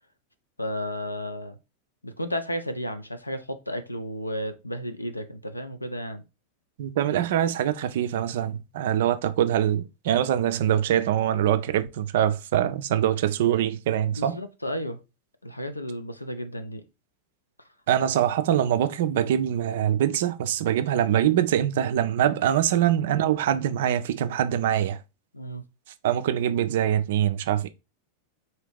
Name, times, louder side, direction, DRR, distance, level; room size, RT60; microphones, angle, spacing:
voice 1, 0.6-1.5 2.0-6.2 14.2-15.0 15.4-16.8 25.3-25.6, equal, 85° left, 0.5 m, -33 dB
voice 2, 6.8-14.4 17.9-25.0 26.0-27.7, right 10 dB, 55° right, 0.4 m, -24 dB
3.8 x 2.8 x 3.3 m
figure-of-eight pair, 90°, 0 cm